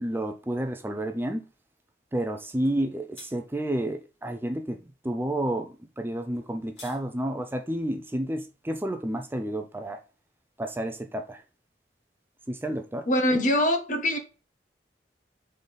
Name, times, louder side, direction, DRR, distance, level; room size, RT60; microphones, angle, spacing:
voice 1, 0.0-1.4 2.1-4.8 5.0-10.0 10.6-11.4 12.5-13.1, right 1 dB, 15° right, 0.5 m, -30 dB
sound 1, 2.6-2.8 3.1-3.3 6.3-7.0, left 3 dB, 85° left, 2.6 m, -47 dB
voice 2, 13.1-14.2, left 1 dB, 45° left, 1.4 m, -23 dB
5.1 x 4.0 x 5.5 m
head